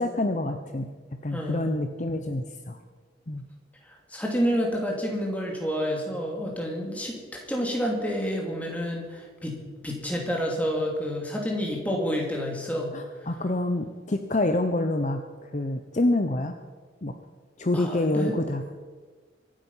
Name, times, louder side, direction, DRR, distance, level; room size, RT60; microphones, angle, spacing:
voice 1, 0.0-2.8 3.3-3.4 12.9-16.6 17.0-17.1 17.6-18.8, left 1 dB, 40° left, 6 dB, 0.7 m, -27 dB
voice 2, 1.3-1.7 3.8-12.9 17.7-18.4, equal, 10° left, -1 dB, 2.7 m, -29 dB
24.0 x 8.9 x 5.6 m, 1.4 s
head